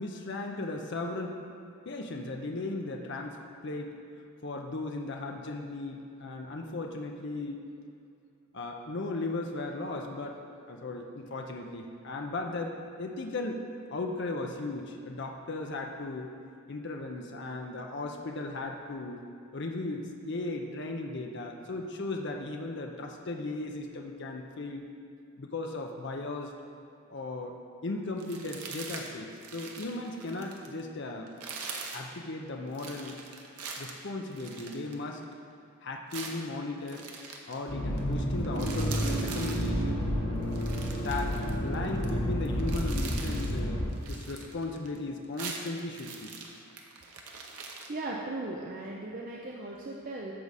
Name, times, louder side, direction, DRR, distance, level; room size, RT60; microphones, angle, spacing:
voice 1, 0.0-1.4 1.9-3.4 3.6-3.9 4.4-7.6 8.5-10.4 10.7-13.6 13.9-16.3 16.7-19.2 19.5-24.8 25.4-26.5 27.1-27.5 27.8-31.3 31.9-33.2 33.8-35.2 35.8-37.0 37.5-40.0 40.7-43.8 44.1-46.3, left 2 dB, 50° left, 2 dB, 0.6 m, -36 dB
sound 1, 28.2-29.1 29.4-30.8 31.3-32.1 32.7-35.4 36.1-37.6 38.0-38.1 38.4-39.7 40.4-42.1 42.4-43.6 43.9-45.0 45.2-47.9, right 4 dB, 90° right, 1.0 m, -42 dB
Accelerating revving vroom, 37.7-43.9, equal, 75° left, 2.2 m, -30 dB
voice 2, 47.9-50.3, right 2 dB, 40° right, -2 dB, 0.5 m, -37 dB
13.5 x 4.7 x 4.1 m, 2.6 s
head